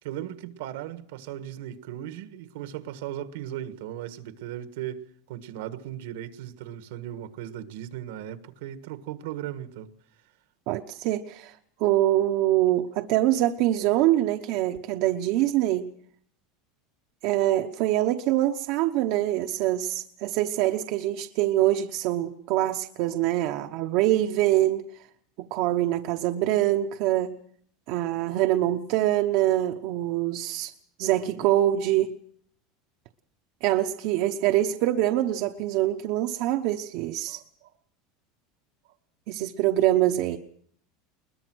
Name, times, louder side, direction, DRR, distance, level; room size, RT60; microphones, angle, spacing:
voice 1, 0.0-9.9 37.3-37.7, right 11 dB, 80° right, 1.6 m, -37 dB
voice 2, 10.7-11.5 11.8-15.9 17.2-24.8 25.4-27.3 27.9-30.7 31.0-32.1 33.6-37.4 39.3-40.4, right 14 dB, 60° right, 1.0 m, -24 dB
21.5 x 20.5 x 6.2 m
supercardioid pair, 140°, 0 cm